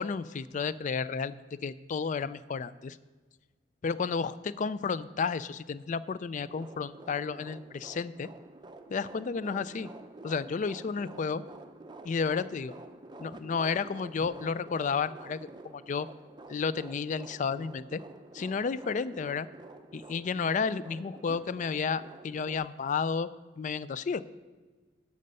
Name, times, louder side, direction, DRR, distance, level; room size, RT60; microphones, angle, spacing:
voice 1, 0.0-3.0 3.8-8.3 8.9-9.9 10.2-11.4 12.0-12.7 13.2-16.1 16.5-18.0 18.3-19.5 19.9-23.3 23.6-24.2, left 5 dB, 40° left, 16 dB, 0.3 m, -32 dB
sound 1, 6.4-22.6, right 2 dB, 25° right, 0.5 m, -49 dB
12.0 x 6.5 x 5.4 m, 1.3 s
head